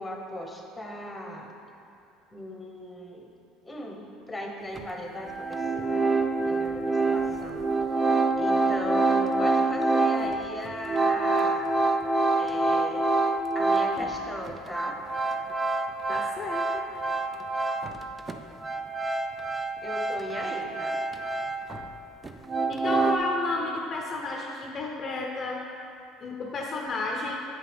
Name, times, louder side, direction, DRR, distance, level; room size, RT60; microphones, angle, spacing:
voice 1, 0.0-1.5 2.3-3.3 3.6-6.1 6.4-7.6 8.4-11.7 12.4-13.1 13.5-15.0 19.8-21.0, left 1 dB, 15° left, 1 dB, 1.0 m, -38 dB
sound 1, 4.8-4.9 5.2-14.2 14.5-18.0 18.3-21.9 22.2-23.2, right 3 dB, 20° right, 0.4 m, -26 dB
voice 2, 16.1-16.8 22.7-25.7 26.2-27.4, left 2 dB, 40° left, 0 dB, 0.6 m, -32 dB
7.3 x 5.8 x 3.5 m, 2.6 s
supercardioid pair, 90°, 0 cm